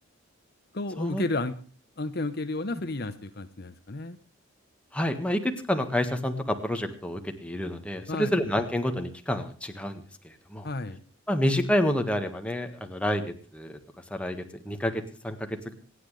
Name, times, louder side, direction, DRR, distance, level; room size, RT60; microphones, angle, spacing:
voice 1, 0.7-1.6 2.0-4.2 8.1-8.3 10.6-11.0, left 2 dB, 50° left, 10 dB, 1.0 m, -32 dB
voice 2, 4.9-10.7 11.3-13.2 13.5-13.8 14.1-15.7, left 1 dB, 5° left, 5 dB, 1.6 m, -29 dB
27.0 x 9.8 x 3.3 m, 0.41 s
head